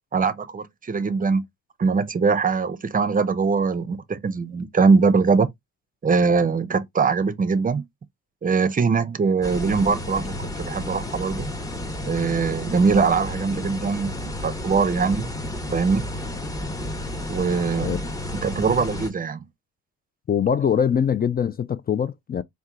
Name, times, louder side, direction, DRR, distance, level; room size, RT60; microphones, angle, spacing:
voice 1, 0.1-1.4 1.8-5.5 6.0-7.8 8.4-11.5 12.0-15.3 15.7-16.1 17.3-18.0 18.3-19.4, right 5 dB, 30° right, 0.6 m, -22 dB
sound 1, 9.4-19.1, left 1 dB, 10° left, 0.8 m, -32 dB
voice 2, 20.3-22.4, left 8 dB, 30° left, 0.4 m, -23 dB
4.4 x 2.3 x 3.7 m
cardioid pair, 90°, 30 cm